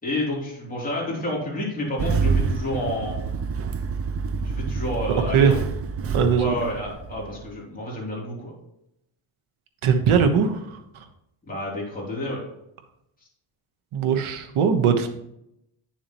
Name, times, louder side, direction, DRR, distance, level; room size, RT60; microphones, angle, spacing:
voice 1, 0.0-3.2 4.4-5.6 6.3-8.5 11.5-12.4, left 1 dB, 15° left, -5 dB, 3.3 m, -29 dB
Engine starting, 2.0-7.5, right 5 dB, 30° right, 0.4 m, -27 dB
voice 2, 6.1-6.5 9.8-11.0 13.9-15.1, right 6 dB, 75° right, 7 dB, 1.3 m, -20 dB
9.2 x 7.3 x 3.0 m, 0.80 s
cardioid pair, 135°, 50 cm